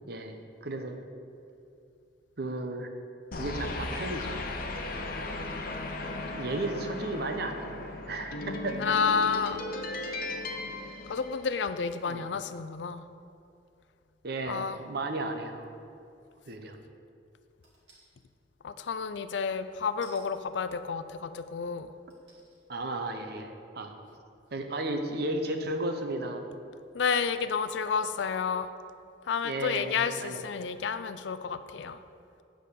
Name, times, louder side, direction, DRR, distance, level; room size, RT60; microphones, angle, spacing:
voice 1, 0.6-1.0 2.4-2.9 3.4-4.4 4.9-5.1 6.3-7.8 8.1-8.9 12.1-12.3 14.2-15.7 16.5-16.8 22.7-23.9 24.5-26.4 29.4-30.5, right 2 dB, 65° right, 5 dB, 0.9 m, -34 dB
sound 1, 3.3-11.9, left 2 dB, 55° left, 0.8 m, -37 dB
voice 2, 8.8-9.6 11.1-13.0 14.5-14.8 18.6-21.9 26.9-28.7 29.3-32.0, left 6 dB, 85° left, 12 dB, 0.4 m, -30 dB
sound 2, 17.6-18.1 20.0-20.3 21.2-21.3 22.1-22.6 23.1-23.2, right 3 dB, 80° right, 2.3 m, -55 dB
8.9 x 5.0 x 6.8 m, 2.5 s
head